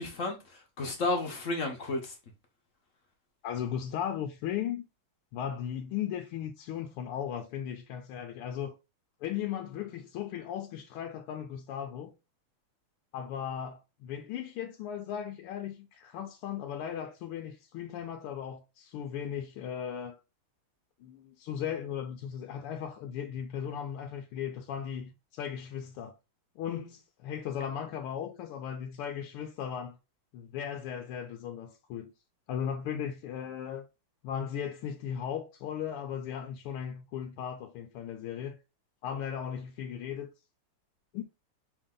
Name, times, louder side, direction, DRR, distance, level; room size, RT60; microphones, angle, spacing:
voice 1, 0.0-2.1, left 2 dB, 50° left, 0.9 m, -32 dB
voice 2, 3.4-4.8 5.3-8.8 9.2-12.1 13.1-20.2 21.0-26.1 26.6-30.0 30.3-32.1 32.5-33.9 34.2-38.6 39.0-40.3 41.1-41.2, left 9 dB, 90° left, 1.5 m, -37 dB
5.2 x 2.7 x 3.7 m
omnidirectional pair, 2.4 m